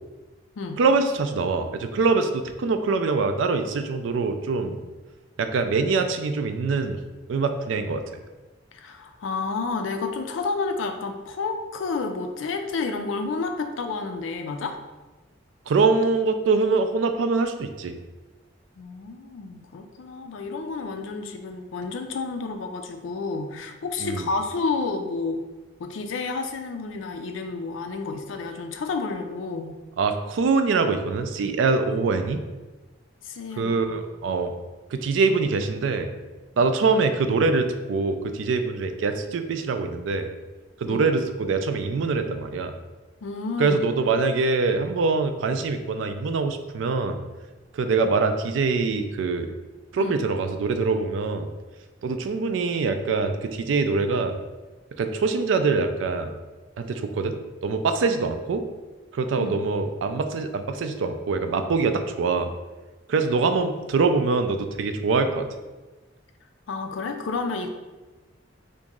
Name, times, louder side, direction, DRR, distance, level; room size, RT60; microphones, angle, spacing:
voice 1, 0.8-4.8 5.4-7.0 7.3-8.0 15.7-17.9 24.0-24.2 30.0-32.4 33.6-34.5 34.9-36.1 36.6-40.3 40.8-42.7 43.6-47.2 47.7-49.5 49.9-51.5 52.0-54.3 55.0-56.3 56.8-57.4 57.6-58.6 59.1-62.5 63.1-65.5, right 4 dB, 75° right, 7 dB, 0.3 m, -24 dB
voice 2, 8.7-14.8 18.8-25.5 25.8-29.8 33.2-34.0 36.5-36.7 40.9-41.1 43.2-43.8 50.0-50.2 59.4-59.6 66.7-67.7, left 4 dB, 80° left, 6 dB, 0.4 m, -30 dB
2.9 x 2.6 x 3.6 m, 1.2 s
head